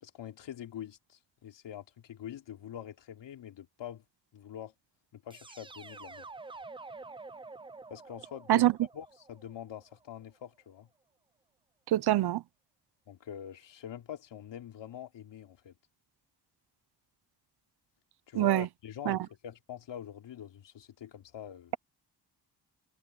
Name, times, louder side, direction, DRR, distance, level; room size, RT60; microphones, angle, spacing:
voice 1, 0.0-4.0 4.3-4.7 5.1-6.3 7.9-10.9 13.1-15.8 18.3-21.7, left 10 dB, 85° left, 3.0 m, -45 dB
sound 1, 5.3-10.2, right 3 dB, 15° right, 0.4 m, -48 dB
voice 2, 8.5-8.9 11.9-12.4 18.3-18.7 19.1-19.3, right 14 dB, 65° right, 0.6 m, -25 dB
wide cardioid pair, 160°, 43 cm